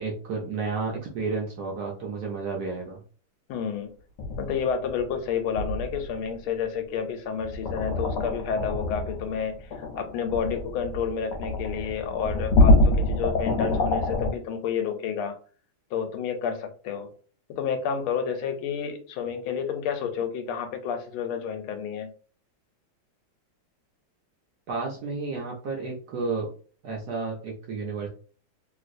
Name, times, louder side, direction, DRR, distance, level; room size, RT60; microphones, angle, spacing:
voice 1, 0.0-3.0 24.7-26.5 26.8-28.1, right 4 dB, 70° right, -1 dB, 1.0 m, -31 dB
voice 2, 3.5-3.9 4.4-15.4 15.9-17.1 17.6-22.1, left 7 dB, 90° left, 6 dB, 1.5 m, -30 dB
sound 1, 4.2-5.2 5.6-6.3 7.4-14.3, left 2 dB, 70° left, 1.2 m, -25 dB
3.1 x 2.9 x 2.5 m, 0.41 s
omnidirectional pair, 2.3 m